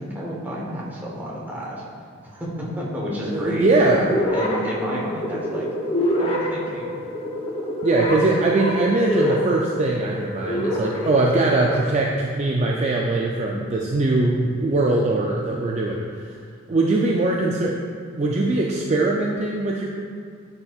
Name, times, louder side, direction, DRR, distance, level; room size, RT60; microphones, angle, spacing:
voice 1, 0.0-1.8 2.2-4.0 4.3-5.7 6.2-6.9, equal, 10° right, -5 dB, 1.1 m, -30 dB
voice 2, 3.2-4.0 7.8-16.3 16.7-17.7 18.1-19.9, right 2 dB, 35° right, -2 dB, 0.4 m, -21 dB
sound 1, 4.0-12.0, left 1 dB, 30° left, 0.7 m, -27 dB
9.9 x 4.4 x 2.4 m, 2.2 s
head